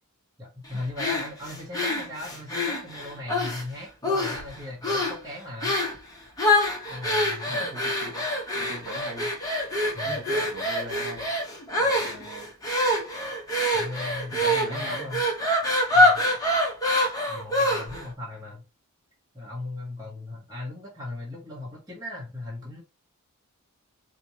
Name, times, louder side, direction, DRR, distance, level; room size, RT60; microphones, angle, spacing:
voice 1, 0.4-5.8 6.9-7.7 9.9-10.2 13.7-15.2 15.9-16.2 17.3-18.6 19.3-22.8, left 2 dB, 15° right, 1.2 m, -38 dB
sound 1, 1.0-3.6 4.0-4.5 4.8-5.2 5.6-6.0 6.4-18.1, left 1 dB, 15° left, 1.2 m, -25 dB
voice 2, 7.5-8.3 8.5-9.3 9.8-11.3 11.8-12.5 14.3-15.1, right 2 dB, 55° right, 2.1 m, -40 dB
4.2 x 3.0 x 2.9 m
head